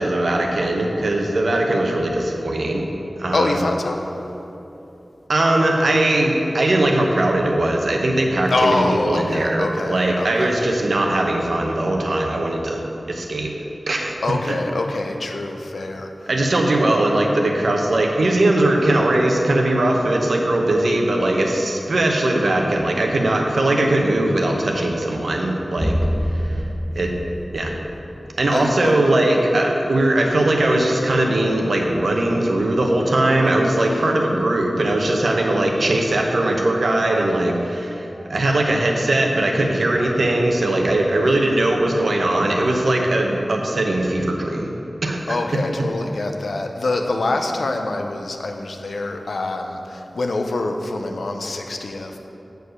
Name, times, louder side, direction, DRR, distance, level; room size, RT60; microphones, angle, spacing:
voice 1, 0.0-2.8 3.2-3.6 5.3-13.5 13.9-14.1 14.5-14.6 16.3-26.0 26.3-26.6 26.9-27.1 27.5-27.7 28.4-38.0 38.3-44.7 45.0-45.4, right 1 dB, 80° right, 1 dB, 0.9 m, -20 dB
voice 2, 3.3-4.0 8.5-10.6 14.2-16.3 28.4-29.1 33.7-34.1 45.3-52.2, left 2 dB, 90° left, 4 dB, 0.6 m, -25 dB
sound 1, 25.8-28.4, equal, 10° left, 0.5 m, -25 dB
7.9 x 4.7 x 6.4 m, 2.9 s
wide cardioid pair, 75°, 0 cm